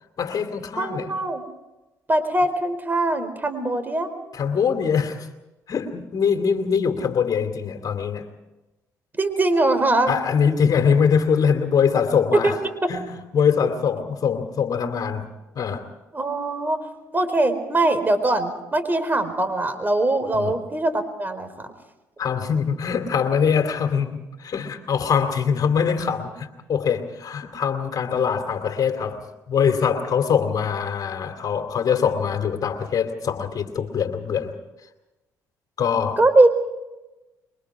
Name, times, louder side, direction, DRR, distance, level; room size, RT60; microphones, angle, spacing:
voice 1, 0.2-1.1 4.3-5.3 5.7-8.3 10.1-12.6 12.9-15.3 15.5-15.9 20.3-20.6 22.2-34.5 35.8-36.2, left 7 dB, 55° left, 7 dB, 2.7 m, -23 dB
voice 2, 0.8-1.4 2.1-4.1 9.2-10.1 12.3-12.5 12.8-12.9 16.1-16.8 17.1-21.7 36.2-36.5, right 2 dB, 25° right, 9 dB, 4.6 m, -21 dB
27.5 x 23.5 x 4.9 m, 1.0 s
supercardioid pair, 60°, 8 cm